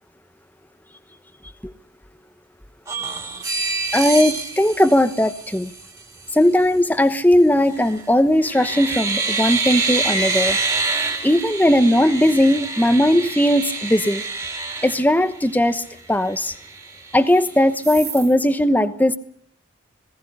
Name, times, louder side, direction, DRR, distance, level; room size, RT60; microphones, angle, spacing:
sound 1, 2.9-5.9 7.7-8.1 8.4-15.7 16.1-16.2 16.5-17.4 17.8-18.3, right 3 dB, 20° right, 3.3 m, -26 dB
voice 1, 3.9-5.7 6.3-10.6 11.2-14.2 14.8-16.5 17.1-19.2, left 1 dB, 10° left, 11 dB, 1.0 m, -18 dB
19.5 x 17.0 x 9.8 m, 0.67 s
head